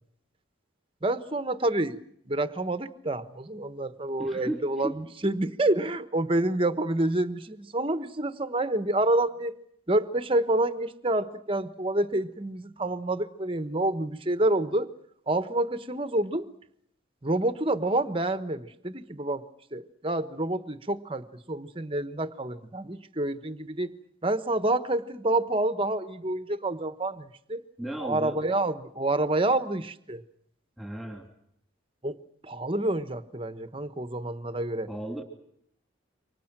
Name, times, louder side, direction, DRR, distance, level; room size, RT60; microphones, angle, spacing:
voice 1, 1.0-2.0 2.3-9.5 9.9-14.9 15.3-16.5 17.2-19.4 19.7-23.9 24.2-27.6 28.0-30.2 32.0-32.2 32.4-34.9, right 1 dB, 25° right, 11 dB, 1.2 m, -28 dB
voice 2, 4.2-4.9 27.8-28.4 30.8-31.2 34.9-35.2, right 1 dB, ahead, 3 dB, 3.0 m, -35 dB
28.5 x 25.0 x 6.1 m, 0.72 s
head